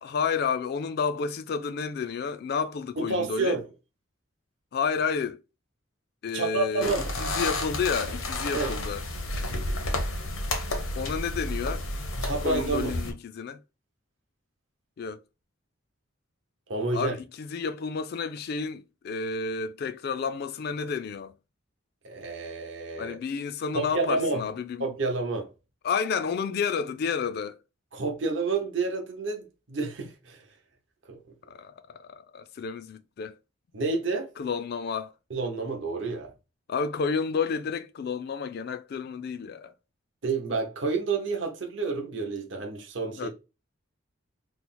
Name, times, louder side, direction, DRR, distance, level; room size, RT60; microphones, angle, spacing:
voice 1, 0.0-3.6 4.7-5.4 6.2-6.9 7.2-9.1 11.0-11.8 12.4-13.6 15.0-15.2 16.9-21.3 23.0-24.9 25.8-27.6 31.5-33.3 34.4-35.1 36.7-39.7 43.2-43.3, left 5 dB, 50° left, 0.3 m, -30 dB
voice 2, 3.0-3.6 6.3-7.1 8.5-8.7 12.2-12.9 16.7-17.1 22.0-23.2 23.7-24.5 24.8-25.5 27.9-30.4 31.1-31.2 33.7-34.3 35.3-36.3 40.2-43.3, right 3 dB, 60° right, 0.8 m, -29 dB
sound 1, 6.8-13.1, left 1 dB, 90° left, 0.8 m, -31 dB
3.0 x 2.0 x 4.1 m
head